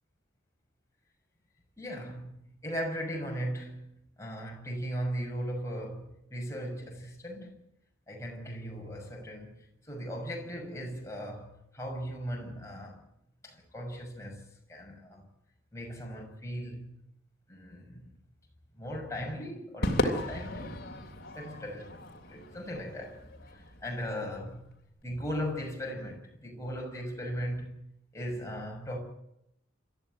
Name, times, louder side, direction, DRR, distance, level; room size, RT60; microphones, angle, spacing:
voice 1, 1.8-2.4 2.6-7.6 8.1-9.6 9.9-13.0 13.4-14.4 14.7-15.2 15.7-17.0 17.5-18.1 18.8-20.8 21.3-22.0 22.3-23.2 23.5-24.7 25.0-27.8 28.1-29.0, equal, 15° left, 6.2 m, -38 dB
Crowd / Fireworks, 19.8-24.3, left 1 dB, 50° left, 3.2 m, -35 dB
27.0 x 14.0 x 9.1 m
head